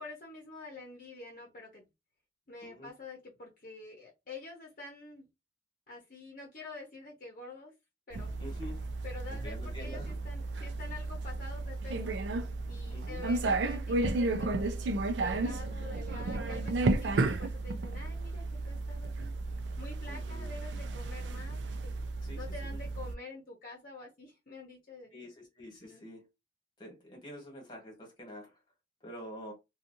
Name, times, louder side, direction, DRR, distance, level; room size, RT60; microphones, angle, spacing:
voice 1, 0.0-1.8 2.5-5.3 5.9-7.7 8.1-8.4 9.0-12.2 12.7-19.4 19.8-22.0 22.4-25.3 25.8-26.1, left 3 dB, 50° left, 0.8 m, -47 dB
voice 2, 2.6-2.9 8.4-8.8 9.3-10.2 12.9-13.2 20.1-20.5 22.2-22.4 25.1-26.3 26.8-28.6 29.0-29.5, equal, 30° left, 1.3 m, -46 dB
sound 1, 8.1-23.1, right 2 dB, 90° right, 0.4 m, -33 dB
2.7 x 2.3 x 2.6 m
head